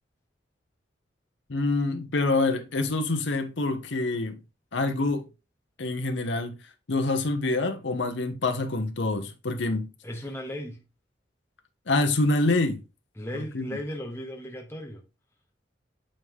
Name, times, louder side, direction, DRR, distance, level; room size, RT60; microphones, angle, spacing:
voice 1, 1.5-4.4 4.7-5.3 5.8-6.6 6.9-9.9 11.9-12.8 13.5-13.7, left 2 dB, 70° left, 0.8 m, -26 dB
voice 2, 10.0-10.8 13.2-15.0, left 1 dB, 15° left, 0.7 m, -36 dB
8.8 x 3.6 x 3.5 m
head